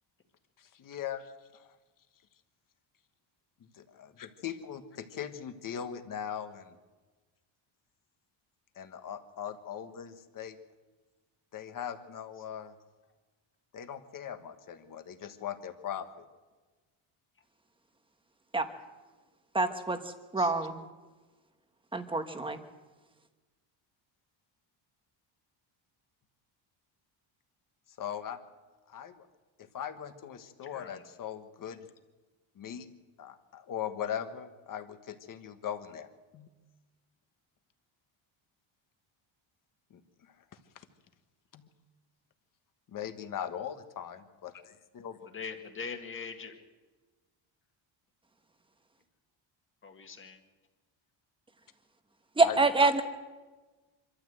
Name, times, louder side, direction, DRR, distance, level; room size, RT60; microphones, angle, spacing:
voice 1, 0.6-1.7 3.6-6.8 8.7-10.6 11.5-12.7 13.7-16.2 28.0-28.4 28.9-29.3 29.6-31.9 32.5-32.9 33.2-36.1 36.3-36.5 39.9-40.0 40.7-40.8 41.5-41.7 42.9-45.2 52.4-52.6, left 9 dB, 40° left, 8 dB, 1.5 m, -40 dB
voice 2, 19.5-20.0 20.3-20.7 21.9-22.6 52.4-53.0, right 3 dB, 10° right, 7 dB, 1.1 m, -26 dB
voice 3, 30.7-31.0 45.3-46.5 49.8-50.4, left 5 dB, 25° left, 4 dB, 1.9 m, -42 dB
25.5 x 13.0 x 7.9 m, 1.3 s
cardioid pair, 175°, 49 cm